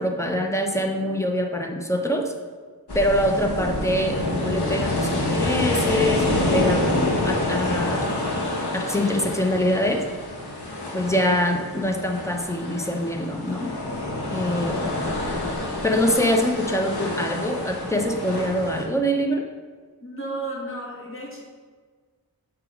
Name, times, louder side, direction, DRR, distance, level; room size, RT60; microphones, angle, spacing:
voice 1, 0.0-2.3 2.9-8.1 8.7-10.0 10.9-13.7 14.3-14.9 15.8-19.4, equal, 10° left, 3 dB, 0.7 m, -24 dB
sound 1, 2.9-18.8, left 1 dB, 90° left, 1.2 m, -27 dB
voice 2, 20.0-21.4, right 2 dB, 35° left, -3 dB, 1.7 m, -33 dB
8.1 x 3.0 x 5.0 m, 1.5 s
wide cardioid pair, 90°, 38 cm